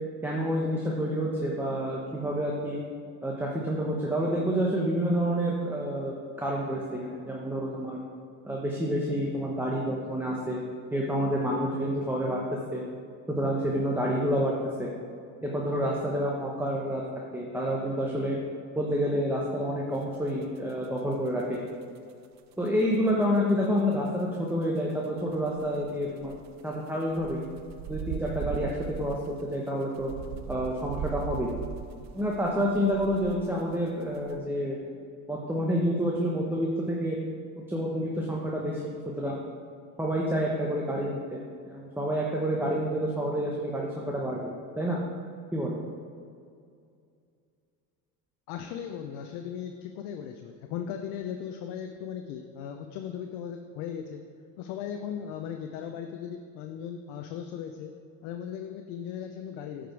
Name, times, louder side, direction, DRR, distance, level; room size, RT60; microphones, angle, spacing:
voice 1, 0.2-2.8 3.2-8.0 8.4-10.6 10.9-12.4 12.7-12.8 13.4-14.5 14.8-14.9 15.4-17.0 17.3-18.4 18.7-21.6 22.6-26.3 26.6-27.4 27.9-28.7 29.0-29.2 29.5-30.1 30.5-31.5 32.1-34.8 35.3-37.2 37.7-39.4 40.0-41.4 41.7-45.0 45.5-45.8, equal, 5° right, -3 dB, 1.1 m, -28 dB
sound 1, 20.3-22.7 22.9-23.4 23.6-23.7 23.9-24.1 24.5-24.6 24.8-24.9 25.2-33.7 34.0-34.4, right 8 dB, 40° right, 0.6 m, -39 dB
voice 2, 48.5-54.2 54.6-57.9 58.2-59.9, left 8 dB, 70° left, 5 dB, 0.7 m, -37 dB
9.2 x 5.1 x 4.6 m, 2.3 s
hypercardioid pair, 75°, 44 cm